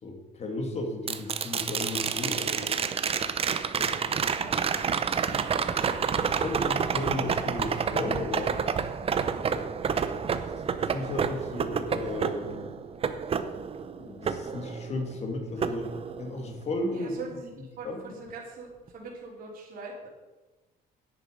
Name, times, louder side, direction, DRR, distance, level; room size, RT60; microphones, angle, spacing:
voice 1, 0.0-2.8 3.7-4.0 6.4-8.5 9.5-9.7 10.9-12.8 14.0-15.9 16.2-17.1 17.8-18.0, left 2 dB, 40° left, 3 dB, 2.3 m, -34 dB
sound 1, 1.1-15.2 15.6-16.6 18.9-19.0, right 6 dB, 35° right, 0.7 m, -29 dB
voice 2, 4.0-6.3 16.9-20.1, right 3 dB, 55° right, -2 dB, 3.3 m, -43 dB
10.5 x 8.2 x 5.3 m, 1.2 s
cardioid pair, 110°, 17 cm